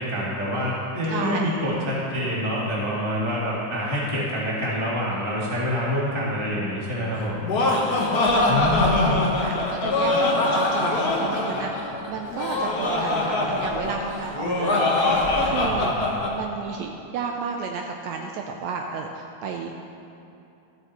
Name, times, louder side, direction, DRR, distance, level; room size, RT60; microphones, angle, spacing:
voice 1, 0.0-7.4 8.4-9.2, equal, 20° left, -6 dB, 0.7 m, -26 dB
voice 2, 1.1-1.5 7.6-8.0 8.3-15.9 16.3-19.7, right 5 dB, 80° right, 2 dB, 1.6 m, -32 dB
Laughter, 7.2-16.3, left 2 dB, 90° left, 0.8 m, -23 dB
13.5 x 8.4 x 4.2 m, 2.7 s
omnidirectional pair, 3.5 m